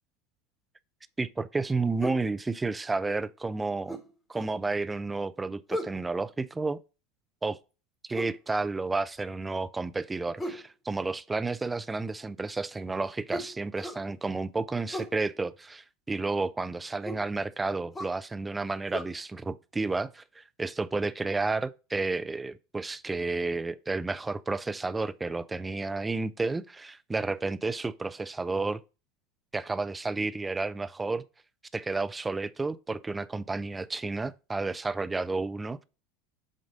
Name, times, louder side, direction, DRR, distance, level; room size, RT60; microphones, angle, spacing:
voice 1, 1.2-4.0 4.3-6.8 7.4-7.6 8.0-28.8 29.5-31.2 31.7-35.8, right 3 dB, 15° right, 0.5 m, -31 dB
sound 1, 2.0-2.3 3.9-4.6 5.7-6.0 8.1-8.4 10.4-10.7 13.3-14.0 14.9-15.2 17.0-17.3 17.9-18.2 18.9-19.0, left 1 dB, 15° left, 1.4 m, -37 dB
7.7 x 2.6 x 5.1 m
figure-of-eight pair, 75°, 0 cm